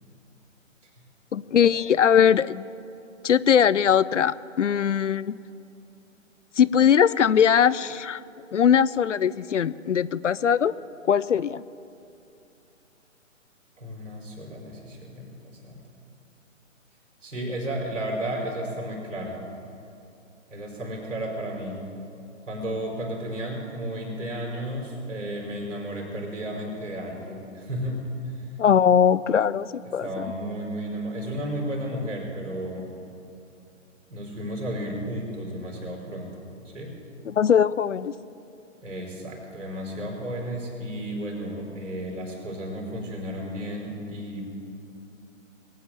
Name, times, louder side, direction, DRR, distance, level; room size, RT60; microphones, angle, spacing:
voice 1, 1.3-2.6 3.2-5.4 6.6-8.2 8.5-10.7 11.0-11.6 28.6-30.3 37.3-38.1, left 8 dB, 65° left, 17 dB, 0.6 m, -20 dB
voice 2, 13.8-15.8 17.2-19.4 20.5-21.8 22.4-28.5 29.9-33.0 34.1-36.9 38.8-44.5, equal, 70° right, 0 dB, 5.1 m, -33 dB
21.0 x 9.3 x 7.4 m, 2.7 s
figure-of-eight pair, 135°, 39 cm